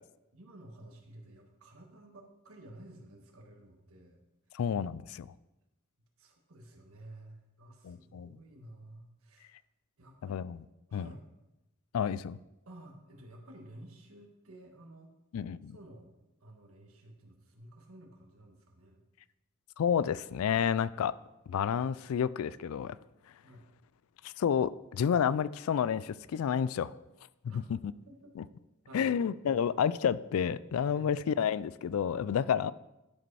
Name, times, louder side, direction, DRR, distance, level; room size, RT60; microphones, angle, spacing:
voice 1, 0.3-4.2 6.2-9.5 10.0-10.4 10.9-11.2 12.7-15.1 15.7-16.1 16.4-19.0 23.4-23.7 27.4-27.6 28.1-28.3 28.9-29.1 30.9-31.1 32.4-32.6, right 1 dB, 80° right, 2 dB, 1.5 m, -53 dB
voice 2, 4.5-5.3 7.8-8.3 10.3-10.6 10.9-11.1 11.9-12.4 15.3-15.8 19.8-21.1 21.5-23.0 24.2-26.9 28.4-28.5 28.9-32.7, left 8 dB, 80° left, 18 dB, 0.3 m, -30 dB
11.0 x 5.0 x 4.8 m, 0.96 s
head